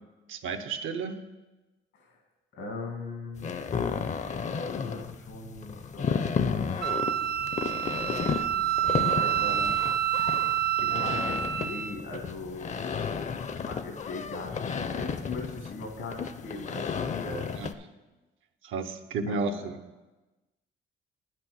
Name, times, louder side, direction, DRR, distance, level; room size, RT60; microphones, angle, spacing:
voice 1, 0.3-1.2 17.5-17.7 18.6-19.9, right 4 dB, 80° right, 9 dB, 0.8 m, -32 dB
voice 2, 2.5-3.5 4.5-6.8 7.9-9.8 10.8-12.7 13.5-17.5 19.3-19.6, left 2 dB, 85° left, 3 dB, 2.1 m, -40 dB
sound 1, 3.4-17.7, left 6 dB, 35° left, 0.5 m, -33 dB
Wind instrument woodwind instrument, 6.8-12.0, right 10 dB, 55° right, 0.6 m, -28 dB
9.0 x 6.0 x 6.2 m, 1.1 s
cardioid pair, 90°, 20 cm